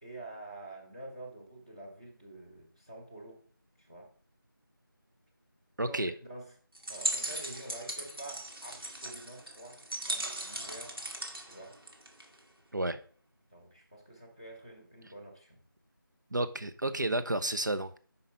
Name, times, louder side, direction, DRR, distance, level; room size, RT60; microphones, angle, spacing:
voice 1, 0.0-3.4 3.8-4.1 5.8-6.5 6.9-11.0 11.4-11.8 13.5-15.6, right 2 dB, 15° right, 1.0 m, -48 dB
voice 2, 5.8-6.1 12.7-13.0 16.3-18.0, right 1 dB, 55° right, 0.7 m, -31 dB
sound 1, 6.7-12.4, right 1 dB, 85° right, 1.9 m, -38 dB
5.5 x 4.9 x 5.5 m
figure-of-eight pair, 175°, 12 cm